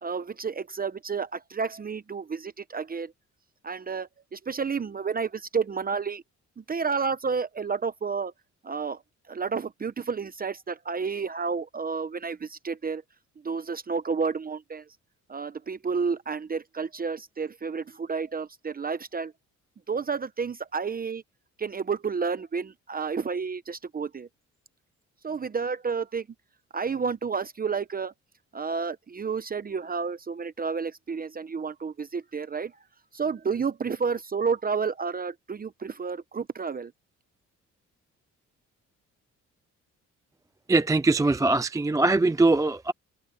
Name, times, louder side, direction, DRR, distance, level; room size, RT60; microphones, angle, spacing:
voice 1, 0.0-3.1 3.6-6.2 6.6-8.3 8.6-9.0 9.3-13.0 13.4-14.8 15.3-19.3 19.9-21.2 21.6-24.3 25.2-26.3 26.7-28.1 28.5-32.7 33.1-36.9, right 5 dB, 30° right, 0.9 m, -30 dB
voice 2, 40.7-42.9, right 2 dB, 10° right, 0.5 m, -22 dB
cardioid pair, 95°, 30 cm